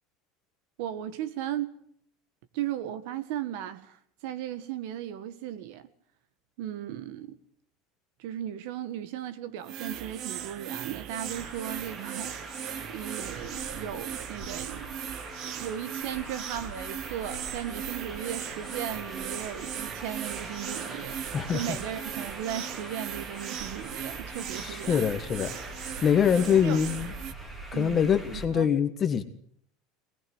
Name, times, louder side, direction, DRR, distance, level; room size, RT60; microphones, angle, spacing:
voice 1, 0.8-1.8 2.5-5.9 6.6-7.4 8.2-12.5 12.9-14.9 15.4-21.2 21.5-25.0 26.5-27.1 27.7-28.1 28.5-28.7, right 11 dB, 60° right, 1.8 m, -36 dB
sound 1, 9.6-27.3, right 9 dB, 40° right, 1.2 m, -38 dB
Traffic noise roadway noise, 11.3-28.4, right 1 dB, 10° right, 2.7 m, -43 dB
voice 2, 24.5-25.6 26.0-27.1 27.7-29.2, left 8 dB, 20° left, 1.6 m, -24 dB
22.0 x 19.5 x 6.3 m
cardioid pair, 170°, 0 cm